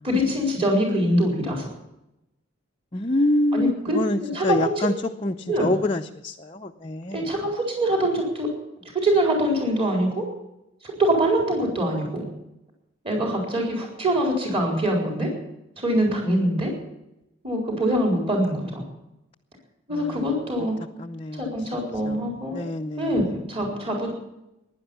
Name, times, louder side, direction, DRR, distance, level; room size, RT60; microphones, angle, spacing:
voice 1, 0.0-1.6 3.5-4.7 5.5-5.7 7.1-8.5 8.9-10.2 10.8-12.3 13.0-15.3 15.8-16.7 17.4-18.9 19.9-20.7 21.4-22.7 23.0-24.1, right 1 dB, 25° right, 4.3 m, -24 dB
voice 2, 2.9-4.9 5.2-7.2 19.9-20.2 21.0-21.4 22.0-22.2 22.5-23.2, left 1 dB, 25° left, 0.6 m, -26 dB
16.0 x 11.0 x 7.1 m
head